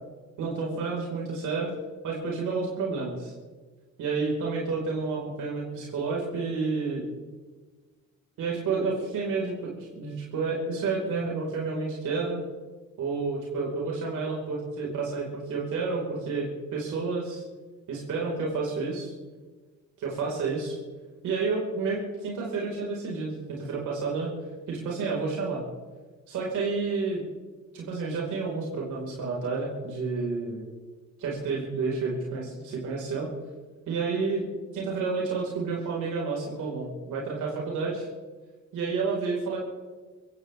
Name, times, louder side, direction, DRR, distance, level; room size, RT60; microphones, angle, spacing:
voice 1, 0.4-1.7 2.0-3.3 4.0-7.1 8.4-12.5 13.0-17.4 17.9-19.1 20.0-20.8 21.2-24.3 24.7-25.6 26.3-27.2 27.7-30.6 31.2-33.3 33.9-34.4 34.7-38.1 38.7-39.6, right 4 dB, 80° right, -3 dB, 4.8 m, -30 dB
22.5 x 16.0 x 3.5 m, 1.4 s
cardioid pair, 90°, 30 cm